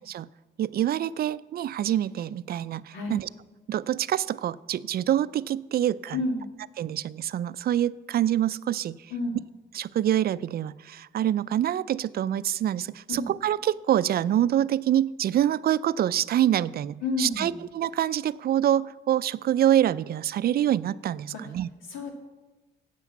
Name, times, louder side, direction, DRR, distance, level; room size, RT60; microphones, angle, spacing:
voice 1, 0.6-3.3 3.7-6.2 6.8-9.1 9.7-21.7, right 11 dB, 50° right, 18 dB, 0.4 m, -26 dB
voice 2, 6.1-6.5 9.1-9.4 13.1-13.3 17.0-17.6 21.3-21.4 21.9-22.1, left 2 dB, 85° left, 2 dB, 2.0 m, -30 dB
9.6 x 8.2 x 7.2 m, 1.2 s
cardioid pair, 90°, 20 cm